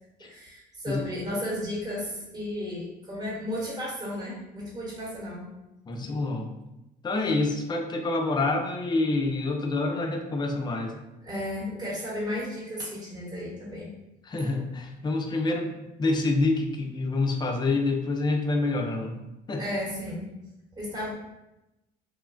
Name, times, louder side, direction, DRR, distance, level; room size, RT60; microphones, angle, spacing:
voice 1, 0.2-5.5 11.2-13.9 19.6-20.2 20.7-21.1, left 1 dB, 25° right, -5 dB, 0.9 m, -34 dB
voice 2, 5.9-6.5 7.0-10.9 14.2-19.2 19.5-19.6, left 2 dB, 25° left, 2 dB, 0.4 m, -27 dB
3.0 x 2.1 x 2.4 m, 0.93 s
cardioid pair, 110°, 17 cm